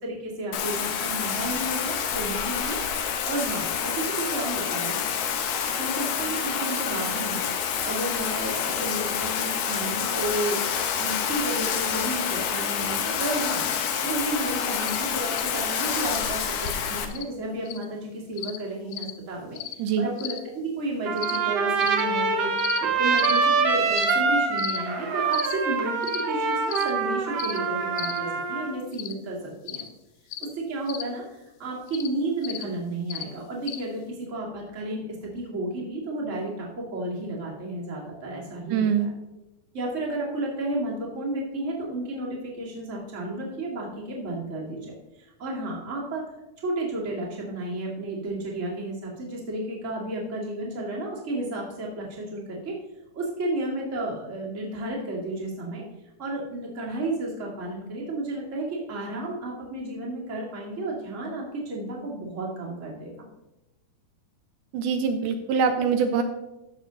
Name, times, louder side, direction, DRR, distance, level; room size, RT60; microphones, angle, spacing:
voice 1, 0.0-2.8 3.3-5.0 5.8-10.6 10.9-13.6 14.0-22.5 22.8-29.8 30.4-39.1 39.7-44.8 45.1-46.2 46.6-52.7 53.1-55.8 56.2-63.3, right 2 dB, 25° right, -3 dB, 2.1 m, -32 dB
Bathtub (filling or washing), 0.5-17.1, left 7 dB, 65° left, 1.9 m, -28 dB
sound 1, 14.9-15.0 15.3-15.5 16.1-16.2 16.6-16.7 17.1-17.2 17.7-17.9 18.4-18.6 18.9-19.1 19.6-19.8 20.2-20.4 21.2-21.4 21.8-22.0 22.6-22.8 23.2-23.4 23.9-24.1 24.6-24.8 25.3-25.5 26.0-26.2 26.7-26.9 27.4-27.6 28.0-28.2 28.9-29.1 29.7-29.9 30.3-30.5 30.9-31.0 31.9-32.1 32.4-32.6 33.1-33.2 33.7-33.8, left 12 dB, 80° left, 2.1 m, -34 dB
Trumpet, 21.0-28.7, right 5 dB, 60° right, 1.9 m, -25 dB
voice 2, 38.7-39.1 64.7-66.2, right 6 dB, 80° right, 7 dB, 2.2 m, -23 dB
13.5 x 6.6 x 3.9 m, 0.97 s
omnidirectional pair, 3.7 m